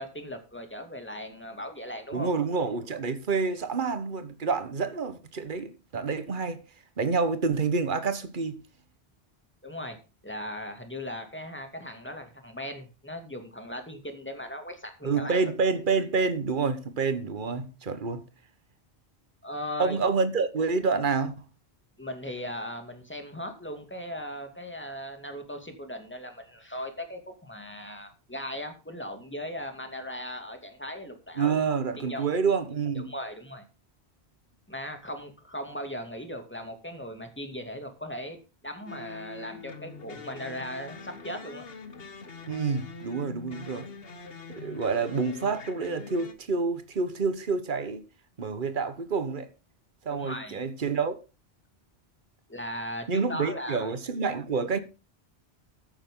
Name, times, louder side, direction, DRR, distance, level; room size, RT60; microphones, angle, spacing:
voice 1, 0.0-2.3 9.6-10.0 10.2-15.5 19.4-20.0 22.0-31.6 32.0-32.3 32.9-33.6 34.7-41.6 50.1-50.6 52.5-53.9, left 1 dB, 10° left, 2.5 m, -38 dB
voice 2, 2.1-6.6 7.0-8.6 15.0-18.2 19.8-21.3 31.4-33.1 42.5-43.9 44.5-48.0 48.4-49.5 50.0-51.1 53.1-54.8, right 5 dB, 50° right, 1.4 m, -28 dB
sound 1, 38.9-46.3, left 4 dB, 65° left, 1.6 m, -44 dB
14.5 x 8.9 x 3.8 m
omnidirectional pair, 1.1 m